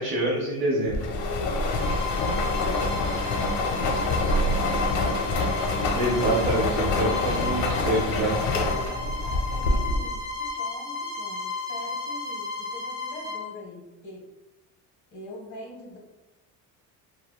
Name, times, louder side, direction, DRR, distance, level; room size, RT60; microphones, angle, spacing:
voice 1, 0.0-1.1 5.9-8.4, right 1 dB, 60° right, -5 dB, 0.7 m, -26 dB
sound 1, 0.9-10.2, left 2 dB, 75° left, 0.6 m, -26 dB
voice 2, 1.1-5.9 8.7-14.3 15.1-16.0, left 3 dB, 45° left, -2 dB, 0.9 m, -42 dB
Bowed string instrument, 1.7-13.5, left 3 dB, 10° right, 0.6 m, -34 dB
2.9 x 2.0 x 2.2 m, 1.0 s
cardioid pair, 110°, 41 cm